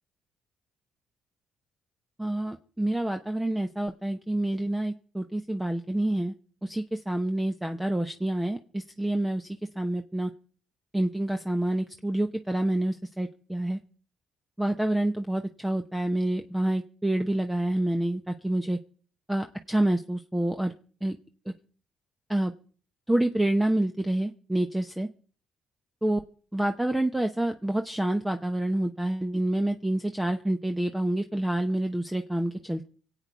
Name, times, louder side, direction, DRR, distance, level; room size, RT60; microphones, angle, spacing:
voice 1, 2.2-6.3 6.6-9.5 9.7-10.3 10.9-13.8 14.6-18.8 19.3-21.2 22.3-22.5 23.1-25.1 26.0-26.2 26.5-32.9, right 1 dB, 10° right, 6 dB, 0.8 m, -28 dB
25.0 x 8.5 x 4.6 m, 0.42 s
cardioid pair, 90°, 0 cm